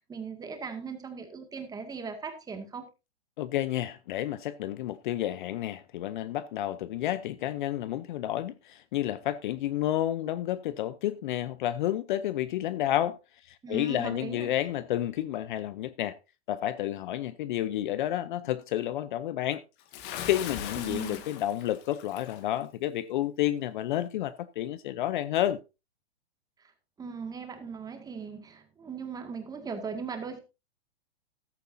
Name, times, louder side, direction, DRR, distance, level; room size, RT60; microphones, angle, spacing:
voice 1, 0.1-2.9 13.6-14.5 20.8-21.3 26.6-26.7 27.0-30.4, right 5 dB, 10° right, 2.0 m, -38 dB
voice 2, 3.4-13.2 13.5-16.2 16.5-19.6 20.2-25.6, left 12 dB, 45° left, 0.7 m, -30 dB
Bathtub (filling or washing) / Splash splatter, 19.9-22.4, left 9 dB, 30° left, 1.8 m, -40 dB
14.5 x 12.5 x 2.7 m
hypercardioid pair, 145°, 33 cm